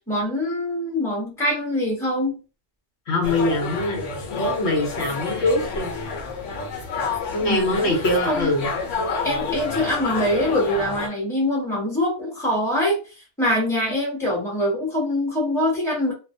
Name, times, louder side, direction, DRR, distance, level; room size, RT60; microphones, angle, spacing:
voice 1, 0.1-2.4 7.4-7.9 8.3-8.5 9.2-13.0 13.4-16.1, left 1 dB, ahead, -4 dB, 0.9 m, -24 dB
voice 2, 3.1-4.0 4.4-5.9 7.3-8.7, left 1 dB, 65° left, 0 dB, 0.9 m, -23 dB
sound 1, 3.2-11.1, left 4 dB, 85° left, 1.0 m, -29 dB
2.4 x 2.1 x 2.5 m, 0.32 s
omnidirectional pair, 1.2 m